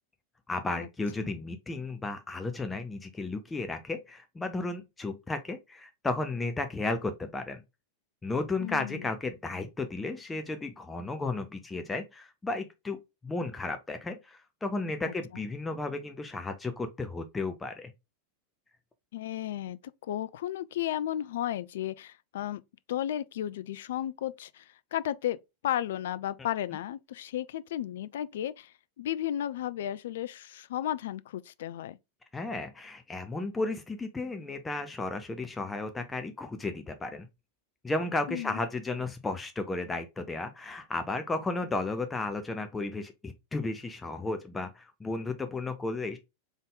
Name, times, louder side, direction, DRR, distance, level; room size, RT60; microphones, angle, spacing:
voice 1, 0.5-7.6 8.2-17.9 32.3-37.3 37.8-46.2, left 3 dB, 10° left, 0.6 m, -34 dB
voice 2, 8.6-9.1 15.0-15.4 19.1-22.6 22.9-32.0 38.3-38.6, left 12 dB, 55° left, 0.3 m, -34 dB
3.7 x 3.5 x 3.7 m
figure-of-eight pair, 90°, 0 cm